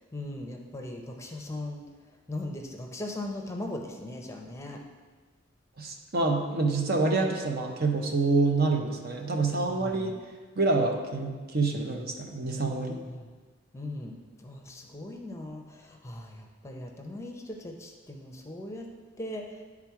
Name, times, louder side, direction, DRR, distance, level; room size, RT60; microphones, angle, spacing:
voice 1, 0.1-1.8 2.3-4.8 9.6-10.2 13.1-13.3 13.7-18.9 19.2-19.6, left 1 dB, 15° left, 2 dB, 0.6 m, -39 dB
voice 2, 5.8-10.1 10.6-13.0, right 3 dB, 50° right, 2 dB, 0.8 m, -27 dB
9.8 x 3.6 x 4.6 m, 1.4 s
head